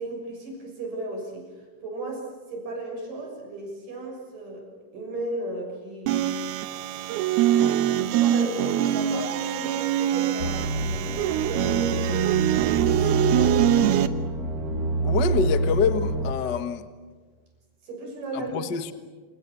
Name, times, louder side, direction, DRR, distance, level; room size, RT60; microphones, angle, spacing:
voice 1, 0.0-4.7 4.9-6.4 7.9-14.1 17.8-18.7, right 2 dB, 60° right, 1 dB, 8.0 m, -35 dB
sound 1, 6.1-14.1, right 11 dB, 85° right, 2.9 m, -24 dB
sound 2, 10.4-16.3, right 2 dB, 35° right, 1.6 m, -27 dB
voice 2, 15.0-16.8 18.3-18.9, left 6 dB, 60° left, 9 dB, 1.1 m, -26 dB
28.5 x 28.5 x 7.0 m, 1.4 s
omnidirectional pair, 4.4 m